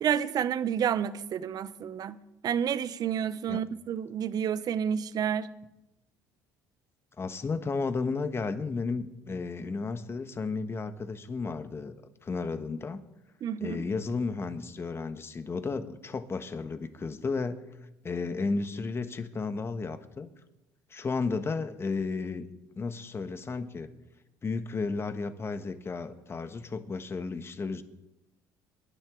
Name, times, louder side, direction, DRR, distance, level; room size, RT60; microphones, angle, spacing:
voice 1, 0.0-5.5 13.4-13.8, right 8 dB, 50° right, 0.8 m, -30 dB
voice 2, 7.2-11.9 12.2-13.0 13.6-17.6 18.0-20.3 20.9-22.5 22.8-23.9 24.4-27.8, left 4 dB, 30° left, 1.3 m, -33 dB
21.5 x 10.5 x 3.8 m
supercardioid pair, 85°, 8 cm